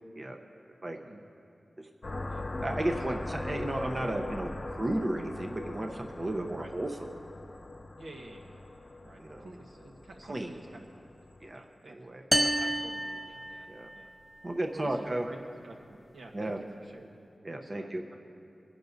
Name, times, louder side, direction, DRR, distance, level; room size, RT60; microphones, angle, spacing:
sound 1, 2.0-11.6, left 2 dB, 50° left, 0.9 m, -41 dB
voice 1, 2.6-6.9 9.2-9.4 10.3-10.5 11.4-12.2 13.7-13.9 14.4-15.3 16.3-16.6 17.4-18.0, right 1 dB, 35° right, 2 dB, 0.7 m, -34 dB
voice 2, 7.9-8.6 9.0-11.2 11.5-14.1 14.7-17.1 17.5-18.2, right 2 dB, 80° right, 0 dB, 1.3 m, -49 dB
sound 2, 12.3-14.0, right 1 dB, 10° right, 0.4 m, -30 dB
24.0 x 11.0 x 2.7 m, 2.7 s
wide cardioid pair, 75°, 0 cm